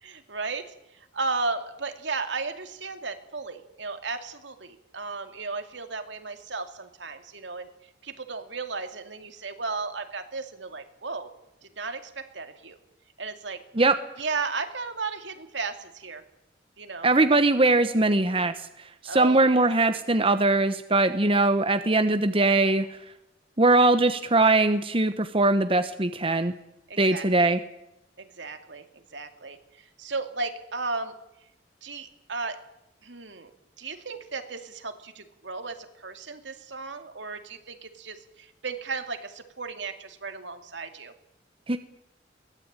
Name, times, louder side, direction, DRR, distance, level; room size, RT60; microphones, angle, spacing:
voice 1, 0.0-7.7 8.0-11.3 11.6-12.8 13.2-13.6 14.2-16.2 16.8-17.1 19.0-19.7 26.9-27.5 28.2-28.8 29.1-31.1 31.8-32.6 33.0-33.5 33.8-41.1, right 4 dB, 75° right, 6 dB, 2.5 m, -35 dB
voice 2, 17.0-18.5 19.0-23.0 23.6-26.5 27.0-27.6 41.7-41.8, right 2 dB, 30° right, 9 dB, 1.0 m, -21 dB
22.5 x 18.0 x 8.9 m, 0.89 s
head